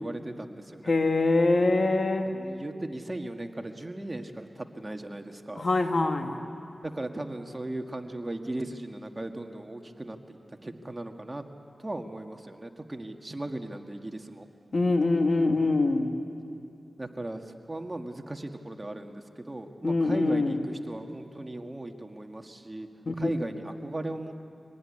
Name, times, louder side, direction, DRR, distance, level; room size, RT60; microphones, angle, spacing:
voice 1, 0.0-0.9 2.3-5.7 6.8-11.4 11.8-14.5 17.0-22.9 23.2-24.3, right 1 dB, 30° right, 5 dB, 1.8 m, -37 dB
voice 2, 0.9-2.3 5.6-6.4 14.7-16.1 19.8-20.6 23.1-23.3, left 2 dB, 60° left, 5 dB, 2.0 m, -24 dB
25.0 x 18.5 x 9.9 m, 2.5 s
cardioid pair, 45°, 0 cm